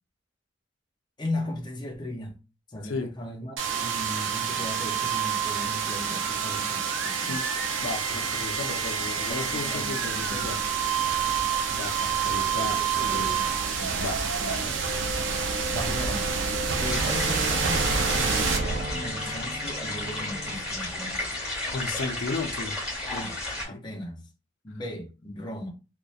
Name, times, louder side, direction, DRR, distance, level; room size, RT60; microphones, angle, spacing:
voice 1, 1.2-2.4 2.7-7.4 9.1-10.6 12.5-14.0 14.4-14.6 15.7-16.3 16.7-21.3 23.1-23.4 23.6-24.3 24.6-25.7, left 1 dB, 25° left, 0.5 m, -37 dB
sound 1, 3.6-19.4, right 6 dB, 80° right, 0.4 m, -28 dB
voice 2, 7.8-10.6 11.7-13.3 14.0-14.7 21.7-22.8 23.1-23.3 23.7-23.8, left 3 dB, 90° left, 0.4 m, -35 dB
Wind instrument woodwind instrument, 16.6-20.7, equal, 30° right, 0.6 m, -38 dB
sound 2, 16.8-23.7, left 2 dB, 5° right, 1.3 m, -33 dB
2.7 x 2.1 x 2.3 m
head